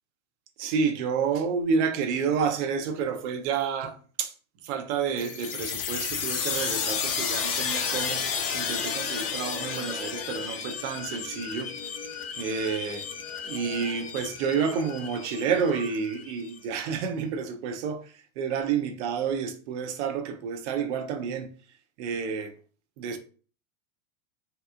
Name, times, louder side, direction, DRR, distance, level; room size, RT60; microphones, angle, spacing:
voice 1, 0.6-4.3 4.6-8.2 8.5-11.7 12.3-13.1 13.4-21.5 22.0-22.5 23.0-23.2, right 6 dB, 55° right, 0.7 m, -29 dB
sound 1, 5.2-16.6, left 6 dB, 50° left, 0.8 m, -32 dB
3.2 x 2.8 x 2.3 m
hypercardioid pair, 110°, 40 cm